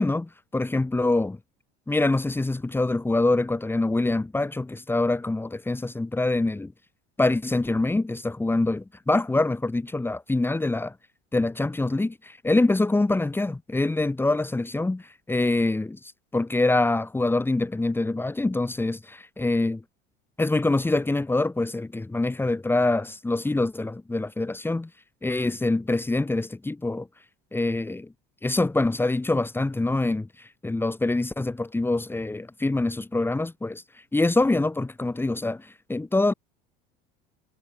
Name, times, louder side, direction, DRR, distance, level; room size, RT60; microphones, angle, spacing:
voice 1, 0.0-1.4 1.9-6.7 7.2-10.9 11.3-19.8 20.4-24.9 25.2-27.1 27.5-28.1 28.4-33.8 34.1-36.3, left 2 dB, 10° left, 3.5 m, -25 dB
supercardioid pair, 105°, 21 cm